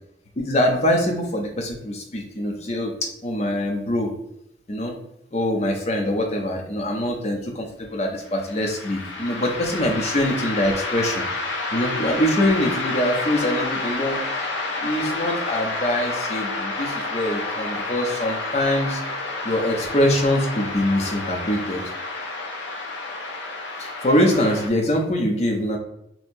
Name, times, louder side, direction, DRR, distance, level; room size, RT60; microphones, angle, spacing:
voice 1, 0.4-4.1 4.7-4.9 5.3-11.2 11.7-14.2 14.8-19.0 19.4-21.8 23.8-25.8, left 1 dB, 35° left, 2 dB, 0.6 m, -23 dB
sound 1, 8.3-24.7, left 3 dB, 75° left, 0.6 m, -29 dB
4.4 x 2.1 x 2.6 m, 0.79 s
head